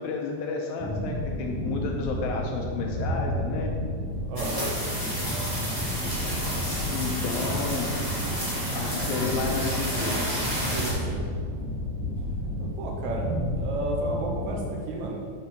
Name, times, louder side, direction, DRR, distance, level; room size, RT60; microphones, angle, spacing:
voice 1, 0.0-3.7 6.9-7.9 8.7-10.2, left 4 dB, 75° left, 1 dB, 1.8 m, -31 dB
sound 1, 0.8-14.6, equal, 50° right, 1.9 m, -31 dB
sound 2, 4.4-10.9, equal, 25° right, 0.4 m, -31 dB
voice 2, 10.6-11.2 12.6-15.2, right 2 dB, 75° right, -1 dB, 2.0 m, -32 dB
6.1 x 4.2 x 5.6 m, 2.2 s
omnidirectional pair, 3.6 m